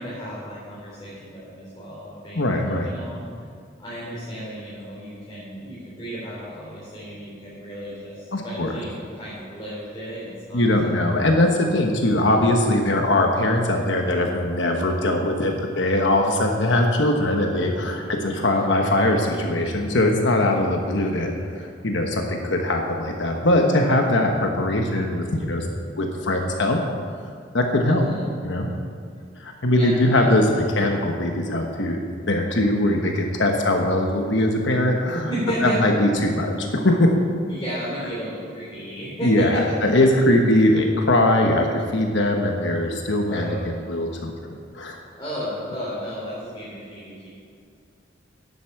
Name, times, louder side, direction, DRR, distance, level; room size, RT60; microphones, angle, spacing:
voice 1, 0.0-3.3 3.8-10.7 18.4-18.6 27.8-28.3 29.7-30.4 35.0-35.8 37.5-39.6 43.2-43.6 45.2-47.3, equal, 20° left, -10 dB, 3.5 m, -33 dB
voice 2, 2.3-2.9 8.3-8.7 10.5-25.7 26.0-26.8 27.5-28.0 28.4-28.7 29.4-32.0 32.3-35.2 35.6-37.2 39.2-44.3 44.7-45.0, left 1 dB, 65° left, 2 dB, 1.2 m, -21 dB
11.0 x 8.3 x 7.1 m, 2.2 s
head